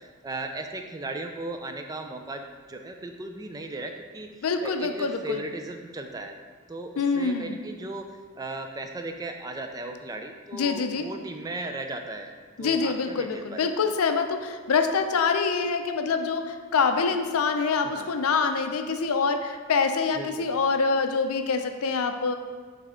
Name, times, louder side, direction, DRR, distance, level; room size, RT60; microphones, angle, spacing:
voice 1, 0.0-4.3 4.6-6.4 6.7-8.1 8.4-12.3 12.6-13.6 17.8-18.1 20.2-20.5, right 2 dB, 15° right, 5 dB, 0.3 m, -36 dB
voice 2, 4.4-5.4 7.0-7.6 10.5-11.1 12.6-22.3, left 5 dB, 70° left, 7 dB, 0.5 m, -25 dB
8.1 x 3.4 x 3.6 m, 1.5 s
head